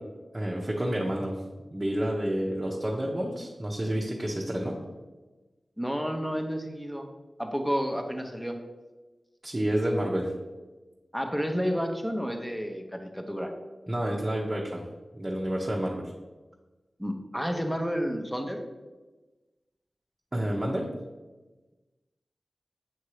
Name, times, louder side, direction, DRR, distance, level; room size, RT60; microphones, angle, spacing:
voice 1, 0.3-1.4 1.7-4.8 9.4-10.3 13.9-14.8 15.1-16.1 20.3-20.9, right 1 dB, 25° right, -3 dB, 0.9 m, -29 dB
voice 2, 5.8-7.1 7.4-8.6 11.1-13.5 17.0-18.6, equal, 5° left, 4 dB, 0.8 m, -30 dB
7.6 x 2.8 x 4.8 m, 1.2 s
cardioid pair, 50°, 0 cm